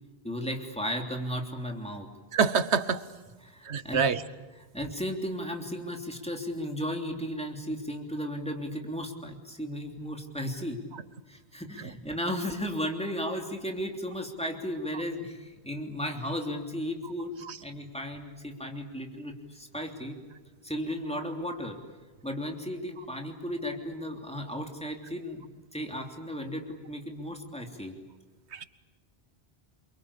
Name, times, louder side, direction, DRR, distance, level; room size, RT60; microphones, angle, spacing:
voice 1, 0.2-2.1 3.4-4.1 4.7-10.8 11.3-20.2 20.6-21.8 22.2-27.9, equal, 5° left, 3 dB, 3.2 m, -35 dB
voice 2, 2.3-3.0 3.6-4.2 17.4-17.6 28.5-28.6, right 6 dB, 80° right, 14 dB, 1.4 m, -26 dB
28.0 x 23.5 x 8.6 m, 1.3 s
omnidirectional pair, 1.1 m